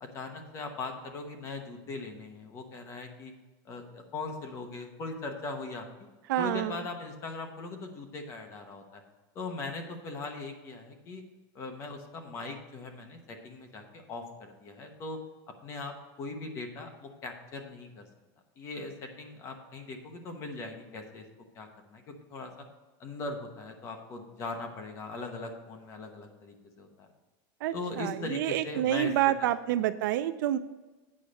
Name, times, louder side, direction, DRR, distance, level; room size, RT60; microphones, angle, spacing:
voice 1, 0.0-3.3 3.6-5.9 6.4-9.0 9.3-11.2 11.5-15.2 15.6-18.1 18.6-21.2 21.5-22.5 23.0-27.1 27.7-29.3 29.8-29.9, left 3 dB, 25° left, 4 dB, 1.0 m, -40 dB
voice 2, 6.3-6.8 27.6-30.6, right 12 dB, 70° right, 12 dB, 0.4 m, -28 dB
8.6 x 5.6 x 6.3 m, 1.2 s
supercardioid pair, 180°, 11 cm